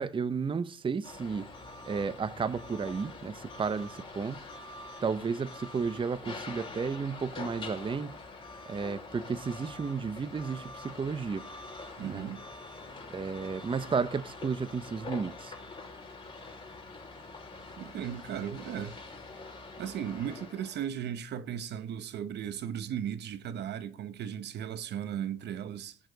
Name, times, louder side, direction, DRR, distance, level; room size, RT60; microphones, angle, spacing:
voice 1, 0.0-1.5 1.9-4.5 5.0-8.2 8.7-11.4 12.0-12.3 13.1-15.5, right 5 dB, 25° right, 0.9 m, -33 dB
sound 1, 1.0-20.9, left 3 dB, 25° left, 5.3 m, -45 dB
voice 2, 12.0-12.4 17.8-19.0 19.8-26.0, right 9 dB, 60° right, 1.1 m, -36 dB
17.0 x 8.9 x 4.0 m
supercardioid pair, 85°, 20 cm